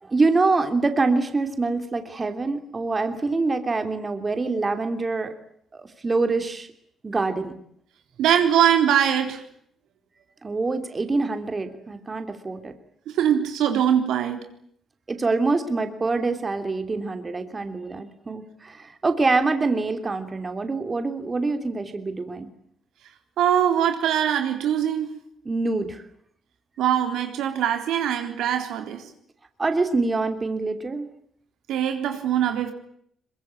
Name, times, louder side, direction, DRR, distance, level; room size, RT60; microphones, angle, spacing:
voice 1, 0.0-5.3 5.7-6.7 7.0-7.5 10.4-12.7 15.1-22.5 25.4-26.0 29.6-31.1, right 3 dB, 30° right, 3.1 m, -25 dB
voice 2, 8.2-9.4 13.1-14.5 23.4-25.2 26.8-29.1 31.7-32.7, right 9 dB, 85° right, 3.8 m, -22 dB
23.0 x 22.0 x 9.7 m
cardioid pair, 90°, 0 cm